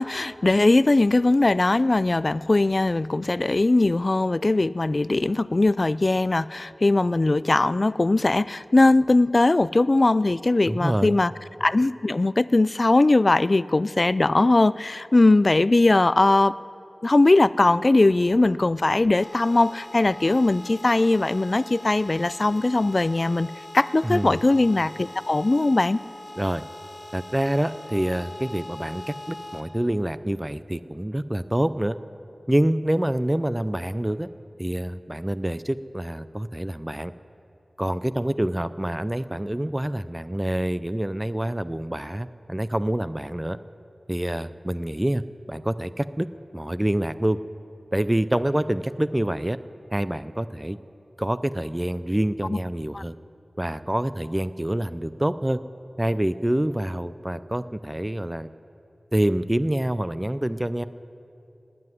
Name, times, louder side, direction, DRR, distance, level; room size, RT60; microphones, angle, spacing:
voice 1, 0.0-11.3 11.6-16.6 17.0-26.0 52.9-53.0, left 2 dB, 50° left, 19 dB, 0.3 m, -20 dB
voice 2, 10.7-11.2 24.0-24.4 26.4-26.6 27.1-32.0 32.5-34.3 34.6-37.1 37.8-43.6 44.1-45.2 45.5-46.3 46.5-47.4 47.9-49.6 49.9-50.8 51.2-53.2 53.6-55.6 56.0-58.5 59.1-60.8, right 1 dB, 15° right, 14 dB, 0.4 m, -26 dB
sound 1, 19.2-29.6, left 1 dB, 25° left, 1.8 m, -42 dB
19.0 x 7.8 x 9.2 m, 2.8 s
wide cardioid pair, 45°, 0 cm